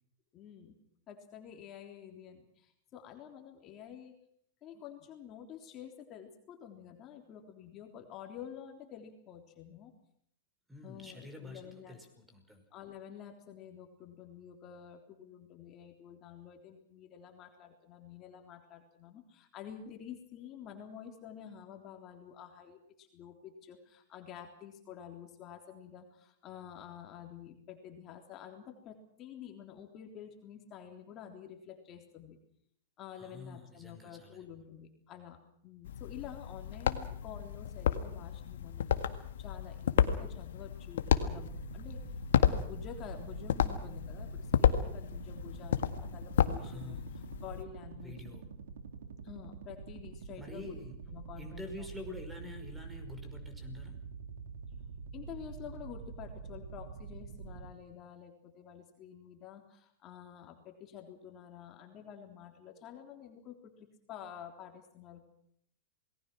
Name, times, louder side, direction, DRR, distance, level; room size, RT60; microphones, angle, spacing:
voice 1, 0.3-0.8 1.1-4.2 4.6-9.9 10.8-12.0 12.7-32.4 33.0-42.0 42.4-47.0 47.4-48.4 49.2-50.8 51.1-51.7 55.1-65.3, left 9 dB, 35° left, 3 dB, 3.6 m, -49 dB
voice 2, 10.7-12.6 33.2-34.5 46.6-47.1 47.9-48.5 50.4-50.9 51.4-54.0, left 2 dB, 5° right, 7 dB, 5.5 m, -47 dB
sound 1, 35.8-47.6, left 9 dB, 75° left, 1.7 m, -32 dB
sound 2, 41.0-57.7, right 5 dB, 80° right, 3.0 m, -46 dB
28.0 x 19.5 x 6.2 m, 0.69 s
hypercardioid pair, 105°, 0 cm